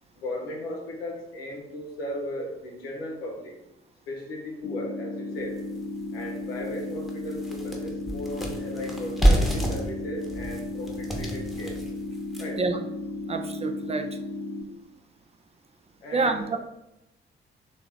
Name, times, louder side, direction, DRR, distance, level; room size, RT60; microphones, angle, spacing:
voice 1, 0.2-3.6 4.1-5.6 6.1-11.8 12.4-12.6 16.0-16.6, left 1 dB, 85° left, -1 dB, 0.7 m, -36 dB
sound 1, 4.6-14.6, left 2 dB, 40° left, 0.6 m, -35 dB
sound 2, 5.6-5.7 6.2-6.3 6.6-12.7, right 1 dB, ahead, 0.9 m, -27 dB
voice 2, 13.3-14.2 16.1-16.6, right 3 dB, 25° right, 7 dB, 0.3 m, -27 dB
3.4 x 2.5 x 3.4 m, 0.89 s
figure-of-eight pair, 40°, 29 cm